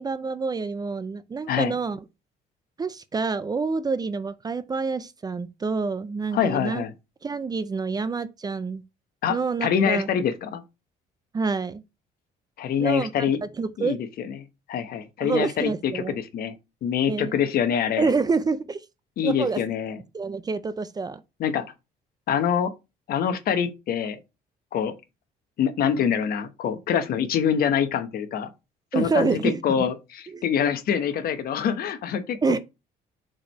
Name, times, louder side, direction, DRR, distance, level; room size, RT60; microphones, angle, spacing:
voice 1, 0.0-2.0 2.8-6.8 7.2-8.8 9.3-10.1 11.3-11.8 12.8-14.0 15.2-16.2 17.1-17.3 18.0-18.8 19.2-19.6 20.1-21.2 28.9-29.9 30.3-30.4 32.4-32.6, right 4 dB, 25° right, 0.5 m, -27 dB
voice 2, 6.3-6.9 9.2-10.6 12.6-13.4 13.8-14.3 14.7-16.5 16.8-18.1 19.2-20.0 21.4-21.6 22.3-22.7 23.1-24.2 24.7-24.9 25.6-28.5 28.9-32.6, left 8 dB, 60° left, 1.0 m, -25 dB
5.0 x 4.5 x 4.4 m
cardioid pair, 110°, 17 cm